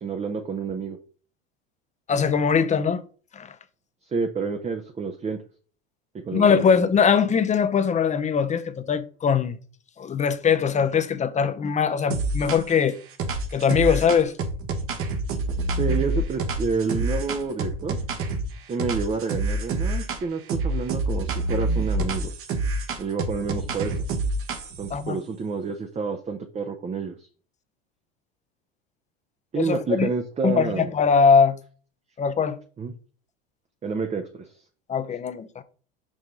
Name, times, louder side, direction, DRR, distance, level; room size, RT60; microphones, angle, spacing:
voice 1, 0.0-1.0 4.1-5.4 6.2-6.6 15.8-18.0 18.7-22.3 23.0-24.0 24.8-27.3 29.5-30.9 32.8-32.9 33.8-34.5, right 5 dB, 20° right, 0.7 m, -29 dB
voice 2, 2.1-3.0 3.3-3.5 6.3-9.6 10.0-13.0 13.5-14.3 24.9-25.2 29.6-30.1 30.4-31.6 32.2-32.6 34.9-35.6, left 6 dB, 25° left, 0.7 m, -21 dB
sound 1, 12.1-12.8 13.2-18.5 18.8-20.2 20.5-24.9, right 2 dB, 45° right, 1.2 m, -27 dB
5.3 x 4.9 x 3.8 m
hypercardioid pair, 90°, 30 cm